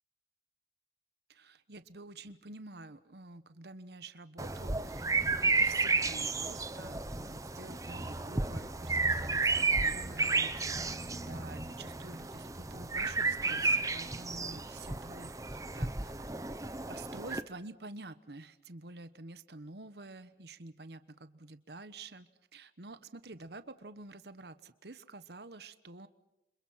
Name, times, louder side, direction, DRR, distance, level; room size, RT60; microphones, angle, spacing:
voice 1, 1.3-5.1 5.4-11.0 11.3-16.1 16.9-26.1, right 2 dB, 70° right, 12 dB, 1.2 m, -49 dB
sound 1, 4.4-17.4, right 3 dB, 20° right, 0.9 m, -32 dB
30.0 x 26.5 x 5.8 m, 0.86 s
head